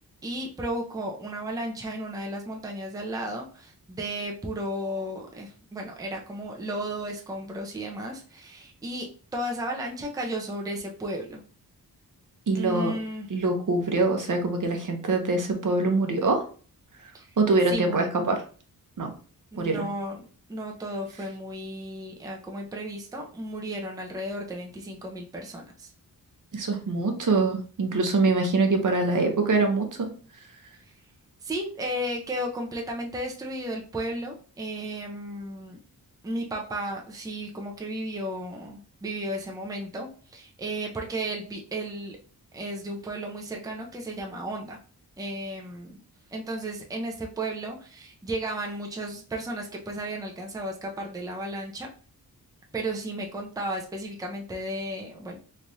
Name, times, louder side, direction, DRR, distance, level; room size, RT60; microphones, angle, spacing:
voice 1, 0.2-11.4 12.5-13.3 17.1-17.3 17.7-18.1 19.5-20.2 20.5-25.9 31.4-35.8 36.2-42.2 42.5-44.8 45.2-46.0 46.3-51.9 52.7-55.4, right 1 dB, 10° right, 0 dB, 0.5 m, -34 dB
voice 2, 12.5-12.9 13.3-16.4 17.4-18.3 19.0-19.1 19.6-19.9 26.5-30.1, right 3 dB, 55° right, 4 dB, 0.8 m, -24 dB
3.2 x 2.4 x 4.0 m, 0.40 s
wide cardioid pair, 145°, 37 cm